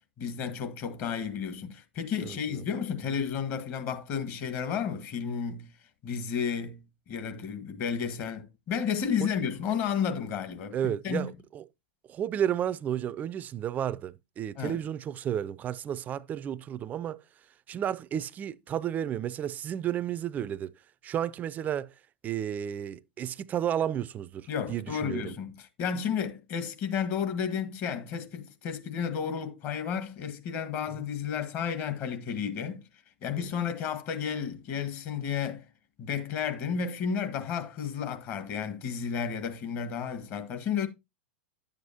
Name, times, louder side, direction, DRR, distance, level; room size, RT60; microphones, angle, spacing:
voice 1, 0.2-5.7 6.0-6.8 7.1-11.3 14.6-14.8 24.5-32.8 33.2-35.6 36.0-40.9, left 7 dB, 40° left, 1.5 m, -32 dB
voice 2, 2.2-2.6 9.2-9.3 10.7-11.6 12.1-17.2 17.7-20.7 21.0-21.9 22.2-25.3, right 10 dB, 25° right, 0.4 m, -32 dB
10.5 x 8.0 x 2.8 m
hypercardioid pair, 100°, 6 cm